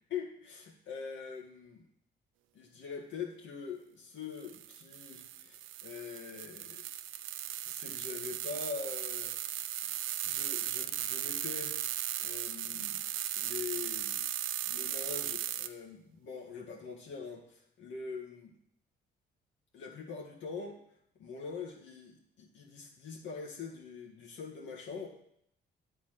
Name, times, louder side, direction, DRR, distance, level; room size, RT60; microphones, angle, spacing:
voice 1, 0.1-1.9 2.5-6.8 7.7-9.7 10.2-11.8 12.2-13.0 13.4-14.2 14.6-18.5 19.7-20.8 21.2-25.1, left 5 dB, 70° left, -1 dB, 1.8 m, -43 dB
sound 1, 4.4-15.7, right 12 dB, 85° right, 0.5 m, -37 dB
8.2 x 4.6 x 6.0 m, 0.70 s
cardioid pair, 90°, 20 cm